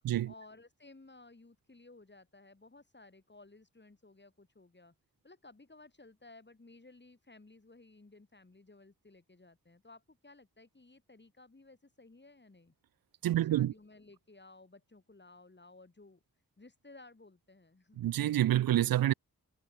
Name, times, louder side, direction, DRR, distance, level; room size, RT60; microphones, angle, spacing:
voice 1, 0.0-4.9 5.2-12.7 13.3-16.2 16.6-18.1, left 2 dB, 30° left, 3.1 m, -57 dB
voice 2, 13.2-13.7 18.0-19.1, right 13 dB, 70° right, 0.5 m, -27 dB
cardioid pair, 40°, 37 cm